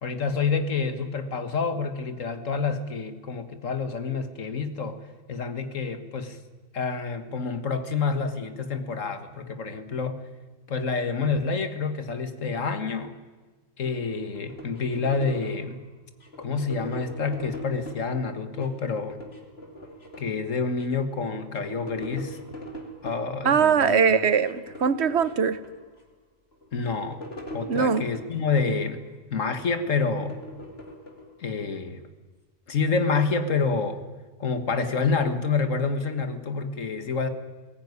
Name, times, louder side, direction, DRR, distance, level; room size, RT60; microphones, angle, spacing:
voice 1, 0.0-5.0 5.3-6.4 6.7-10.2 10.7-13.2 13.8-15.8 16.4-19.2 20.2-22.4 23.0-24.0 26.7-27.2 27.5-29.0 29.3-30.4 31.4-32.0 32.7-34.0 34.4-37.3, left 4 dB, 80° left, 9 dB, 2.0 m, -28 dB
sound 1, 13.9-15.7 16.2-18.1 18.5-20.4 20.8-20.9 21.1-23.3 23.8-24.1 24.4-26.0 26.5-28.9 29.4-31.7, left 1 dB, 50° left, 3.0 m, -42 dB
voice 2, 23.4-25.6 27.7-28.1, right 6 dB, 60° right, 14 dB, 1.1 m, -21 dB
20.5 x 17.5 x 9.6 m, 1.3 s
omnidirectional pair, 1.3 m